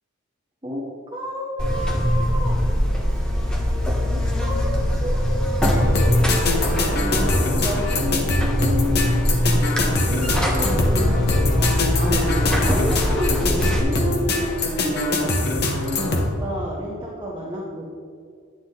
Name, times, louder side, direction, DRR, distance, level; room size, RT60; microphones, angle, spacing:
voice 1, 0.6-2.6 4.0-9.3 10.0-15.3 15.7-18.0, equal, 20° right, -5 dB, 1.3 m, -30 dB
Buzz, 1.6-13.8, equal, 5° left, 1.4 m, -22 dB
sound 1, 5.6-16.3, left 2 dB, 50° left, 1.3 m, -23 dB
9.7 x 9.3 x 4.0 m, 2.2 s
head